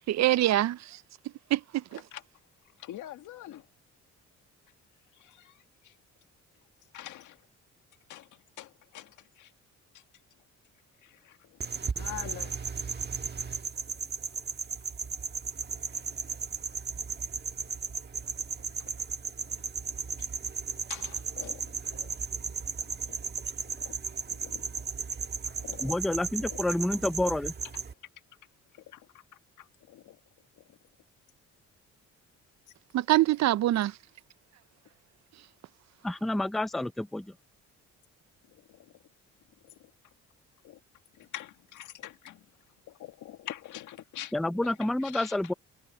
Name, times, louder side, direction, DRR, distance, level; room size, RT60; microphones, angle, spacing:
voice 1, 0.1-0.8 1.5-1.8 32.9-33.9, right 15 dB, 60° right, 0.5 m, -24 dB
voice 2, 2.6-3.7 5.1-6.0 6.9-7.4 8.1-9.5 9.9-10.0 11.0-11.6 11.9-12.7 15.9-16.1 18.5-18.9 19.2-19.6 20.2-20.3 20.9-22.1 22.8-23.2 23.8-23.9 24.3-24.6 25.4-25.9 26.4-26.6 28.7-29.2 29.6-30.2 30.6-30.8 38.4-38.9 39.6-39.9 40.6-40.8 41.1-42.5 42.9-45.5, left 13 dB, 80° left, 1.7 m, -46 dB
sound 1, 11.6-27.9, right 5 dB, 35° right, 1.5 m, -35 dB
voice 3, 25.8-27.5 36.0-37.3 44.3-45.5, left 1 dB, ahead, 0.4 m, -29 dB
cardioid pair, 90°, 30 cm